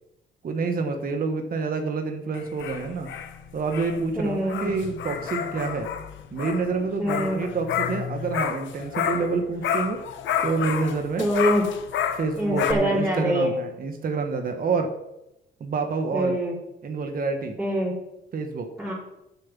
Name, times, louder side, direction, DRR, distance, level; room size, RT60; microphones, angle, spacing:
voice 1, 0.4-3.1 3.5-5.9 6.3-10.0 10.4-11.3 12.1-14.9 15.6-16.4 16.8-17.6 18.3-18.7, right 4 dB, 45° right, 5 dB, 1.2 m, -27 dB
sound 1, 2.3-9.4 9.6-12.7, left 9 dB, 75° left, 0.9 m, -30 dB
voice 2, 4.2-4.8 7.0-7.4 11.2-11.6 12.4-13.5 16.1-16.5 17.6-17.9 18.8-18.9, equal, 5° right, -8 dB, 4.2 m, -24 dB
7.6 x 7.1 x 7.4 m, 0.91 s
cardioid pair, 90°, 20 cm